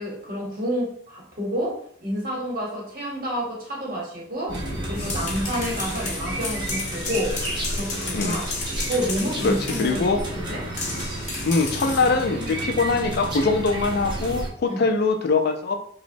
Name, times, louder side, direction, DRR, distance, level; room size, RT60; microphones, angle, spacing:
voice 1, 0.0-4.6 4.9-7.3 7.7-8.5 8.9-10.0 10.3-10.6 14.7-14.9, equal, 45° right, -3 dB, 0.9 m, -29 dB
sound 1, 4.5-14.5, right 1 dB, 25° right, 0.6 m, -31 dB
sound 2, 4.8-10.0 10.8-12.2, left 3 dB, 40° left, 0.8 m, -33 dB
voice 2, 9.4-10.2 11.4-15.8, left 3 dB, 55° left, 6 dB, 0.4 m, -22 dB
3.0 x 2.0 x 2.6 m, 0.63 s
head